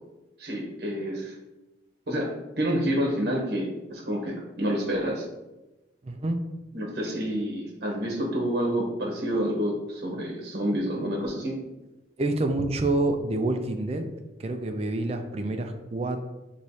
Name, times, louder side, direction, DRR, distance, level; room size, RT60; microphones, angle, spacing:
voice 1, 0.4-1.3 2.1-5.3 6.7-11.6, equal, 55° right, -2 dB, 0.9 m, -28 dB
voice 2, 6.0-6.4 12.2-14.0 14.4-16.3, right 2 dB, 35° right, 5 dB, 0.4 m, -27 dB
6.2 x 3.1 x 2.7 m, 1.0 s
head